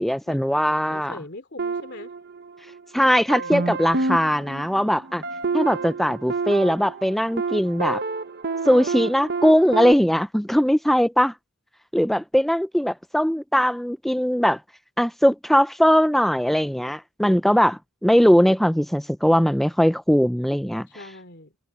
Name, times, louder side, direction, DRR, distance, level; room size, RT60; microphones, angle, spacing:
voice 1, 0.0-1.2 2.9-5.2 5.5-8.0 8.7-11.3 11.9-14.6 15.0-20.9, equal, ahead, 0.4 m, -20 dB
voice 2, 0.9-2.1 3.3-4.1 20.9-21.5, left 2 dB, 55° left, 3.1 m, -42 dB
sound 1, 1.6-2.8 3.3-9.9, right 3 dB, 50° right, 1.1 m, -29 dB
head